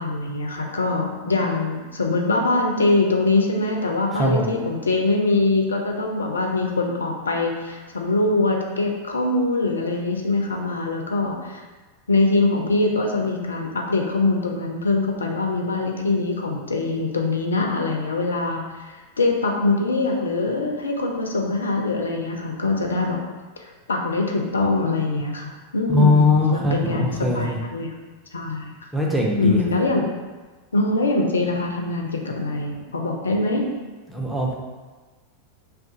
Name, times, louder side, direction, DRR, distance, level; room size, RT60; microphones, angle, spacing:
voice 1, 0.0-11.6 12.1-23.2 23.6-27.9 28.3-28.7 29.4-30.0 30.7-33.7, left 2 dB, 70° left, 1 dB, 0.3 m, -23 dB
voice 2, 4.1-4.5 25.9-27.6 28.9-29.7 34.1-34.5, left 2 dB, 5° right, -3 dB, 0.6 m, -20 dB
2.4 x 2.2 x 3.7 m, 1.3 s
figure-of-eight pair, 90°, 0 cm